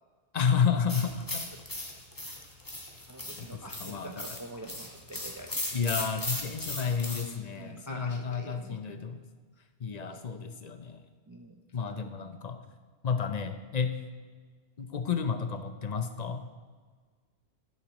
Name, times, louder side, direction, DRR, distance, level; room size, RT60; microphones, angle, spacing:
voice 1, 0.3-1.5 3.4-4.3 5.7-9.2 9.8-11.0 11.7-12.6 13.0-13.9 14.8-16.4, left 6 dB, 45° left, 8 dB, 0.7 m, -31 dB
sound 1, 0.9-7.3, left 1 dB, 20° left, 1.3 m, -37 dB
voice 2, 3.1-5.7 7.5-8.8 11.3-11.6, right 1 dB, 30° right, 3 dB, 0.4 m, -45 dB
10.0 x 9.3 x 3.0 m, 1.5 s
omnidirectional pair, 1.1 m